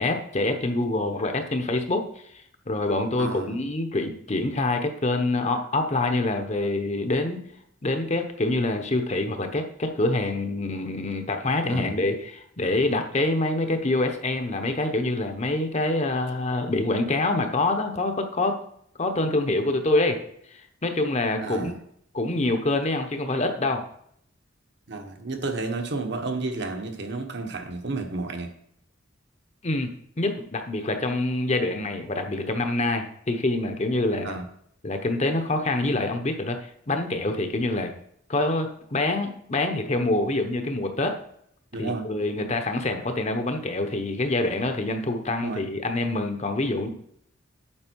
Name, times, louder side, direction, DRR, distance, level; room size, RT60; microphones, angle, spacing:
voice 1, 0.0-2.0 2.7-7.4 7.8-18.6 19.0-20.2 20.5-21.8 22.1-23.8 29.6-29.9 30.2-34.4 34.8-37.9 38.3-41.2 41.8-46.9, left 2 dB, 35° left, 6 dB, 0.9 m, -26 dB
voice 2, 3.1-3.6 11.6-11.9 21.4-21.7 24.9-28.5 34.2-34.4 41.7-42.1 45.4-45.7, right 3 dB, 55° right, 4 dB, 1.3 m, -31 dB
8.8 x 7.5 x 4.6 m, 0.69 s
head